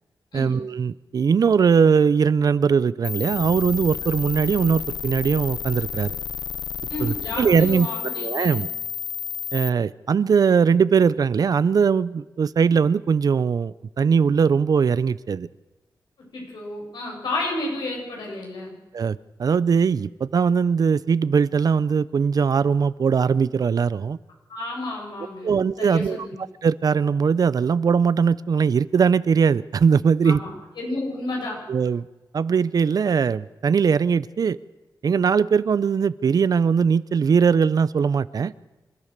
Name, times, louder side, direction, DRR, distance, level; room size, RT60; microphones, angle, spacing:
voice 1, 0.3-6.1 7.0-7.9 8.2-8.7 9.5-15.5 18.9-24.2 25.4-26.2 26.6-30.4 31.7-32.1 32.3-34.6 35.0-38.5, right 6 dB, 60° right, 18 dB, 0.6 m, -20 dB
sound 1, 3.0-9.7, left 7 dB, 70° left, 0.7 m, -31 dB
voice 2, 6.9-8.6 16.3-18.7 24.5-26.4 30.2-31.6, left 2 dB, 90° left, -1 dB, 7.7 m, -31 dB
27.0 x 14.5 x 6.7 m, 1.1 s
wide cardioid pair, 130°, 7 cm